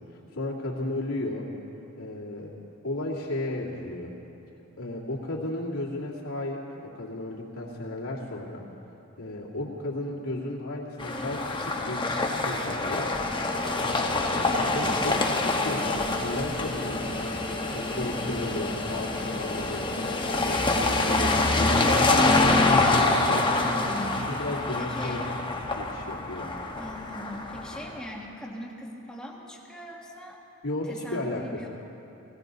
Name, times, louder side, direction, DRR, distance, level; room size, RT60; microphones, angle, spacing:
voice 1, 0.3-1.5 2.0-2.5 2.8-4.1 4.8-8.7 9.2-12.1 12.4-13.1 14.3-17.1 17.7-19.9 20.4-22.3 24.1-25.4 25.8-26.5 30.6-31.7, left 2 dB, 80° left, -4 dB, 2.4 m, -34 dB
sound 1, 11.0-28.0, left 2 dB, 20° left, 1.0 m, -26 dB
voice 2, 23.6-24.3 24.8-25.3 26.8-30.4 30.9-31.7, equal, 5° left, -1 dB, 1.4 m, -40 dB
17.5 x 16.5 x 4.0 m, 2.9 s
head